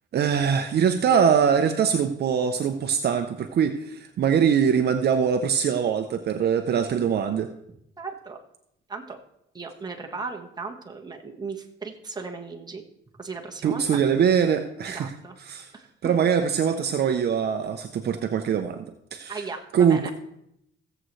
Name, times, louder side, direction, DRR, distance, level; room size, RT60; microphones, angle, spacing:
voice 1, 0.1-7.5 13.6-15.1 15.5-15.7 16.0-18.8 19.1-19.4 19.7-20.1, right 7 dB, 55° right, 7 dB, 0.7 m, -22 dB
voice 2, 8.0-8.4 8.9-9.2 9.5-12.8 13.2-13.8 14.9-15.4 15.7-15.9 19.3-20.1, right 4 dB, 20° right, 2 dB, 1.5 m, -36 dB
16.5 x 7.7 x 3.2 m, 0.77 s
cardioid pair, 100°, 20 cm